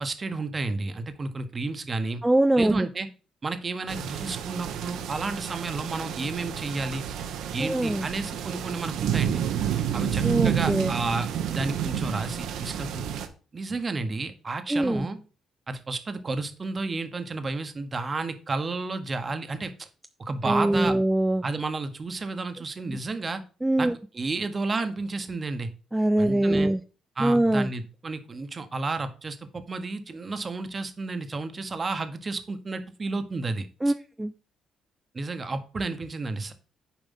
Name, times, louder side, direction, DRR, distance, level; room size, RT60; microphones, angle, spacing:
voice 1, 0.0-2.2 2.6-3.1 3.4-7.0 7.5-9.4 9.9-13.0 13.5-15.2 15.7-19.9 20.2-20.9 21.4-23.4 23.8-23.9 24.1-25.7 26.2-26.7 27.2-33.9 35.1-36.5, right 3 dB, 25° right, 1.0 m, -31 dB
voice 2, 2.2-2.9 7.6-8.1 10.2-10.9 14.7-15.1 20.4-21.4 22.9-23.0 23.6-23.9 25.9-26.8 27.2-27.7 33.8-34.3, right 1 dB, 10° right, 0.3 m, -23 dB
sound 1, 3.9-13.3, right 9 dB, 85° right, 1.1 m, -30 dB
7.1 x 4.8 x 5.5 m
cardioid pair, 135°, 0 cm